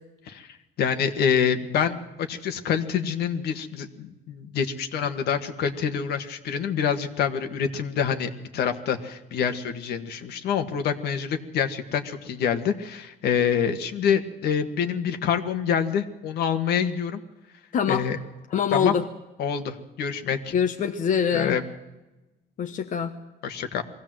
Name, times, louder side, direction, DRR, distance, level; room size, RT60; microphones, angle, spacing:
voice 1, 0.3-17.2 17.9-18.2 18.7-18.9 19.4-20.5 21.3-21.6 23.4-23.8, left 7 dB, 70° left, 7 dB, 1.8 m, -26 dB
voice 2, 17.7-18.0 18.5-19.1 20.5-21.6 22.6-23.1, left 7 dB, 50° left, 5 dB, 1.2 m, -24 dB
22.0 x 16.0 x 7.8 m, 1.0 s
cardioid pair, 110°, 17 cm